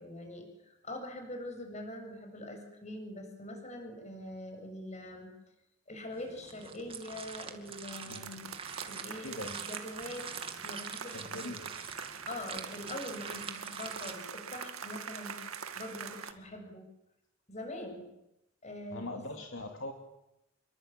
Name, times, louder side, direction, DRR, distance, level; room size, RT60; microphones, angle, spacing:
voice 1, 0.0-5.3 5.9-8.5 8.9-10.3 10.6-11.6 12.3-15.4 15.8-16.9 17.5-18.1 18.6-19.2, left 1 dB, 35° left, 4 dB, 7.7 m, -43 dB
sound 1, 6.1-14.1, right 6 dB, 25° right, 2.4 m, -45 dB
sound 2, 7.0-7.4 7.7-16.3, right 7 dB, 90° right, 2.1 m, -44 dB
voice 2, 9.2-9.6 11.1-12.0 18.9-19.9, left 2 dB, 65° left, 4 dB, 2.6 m, -42 dB
27.5 x 23.0 x 9.0 m, 0.88 s
head